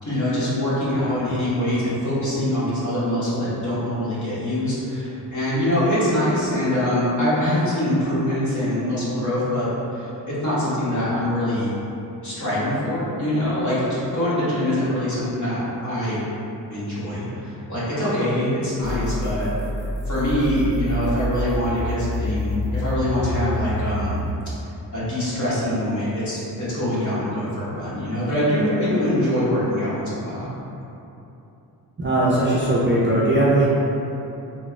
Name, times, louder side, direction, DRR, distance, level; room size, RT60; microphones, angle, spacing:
voice 1, 0.0-11.7 12.2-16.2 16.7-19.5 20.1-24.2 24.9-26.4 26.7-30.5, left 1 dB, 40° left, -10 dB, 1.3 m, -24 dB
sound 1, 18.8-24.4, equal, 85° left, 0.9 m, -27 dB
voice 2, 32.0-33.7, right 1 dB, 25° right, -8 dB, 0.5 m, -19 dB
3.9 x 2.1 x 2.4 m, 2.9 s
cardioid pair, 70°, 44 cm